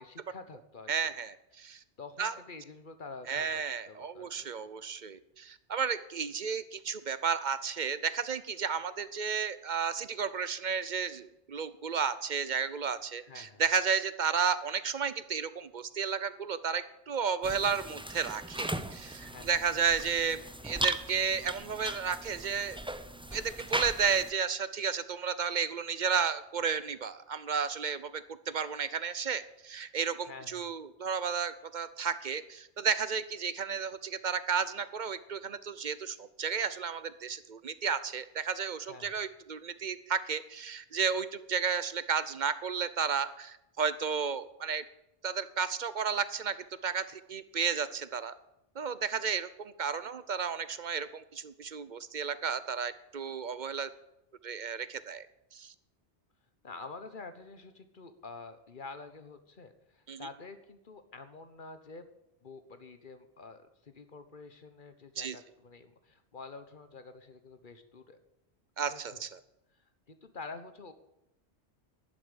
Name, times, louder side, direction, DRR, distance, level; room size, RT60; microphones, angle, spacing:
voice 1, 0.0-1.1 2.0-4.5 13.2-13.6 19.2-19.5 30.2-30.7 38.8-39.2 56.6-62.0 62.4-68.2 68.8-69.2 70.1-70.9, left 4 dB, 45° left, 10 dB, 1.3 m, -48 dB
voice 2, 0.9-1.8 2.2-2.3 3.3-22.8 23.3-44.8 45.2-46.6 46.8-48.3 48.8-53.9 54.4-55.3 55.5-55.7 60.1-60.3 65.2-65.4 68.8-69.4, right 6 dB, 45° right, 14 dB, 0.8 m, -33 dB
sound 1, 17.4-24.3, right 1 dB, 5° right, 0.5 m, -38 dB
11.5 x 7.6 x 9.9 m, 0.86 s
omnidirectional pair, 1.2 m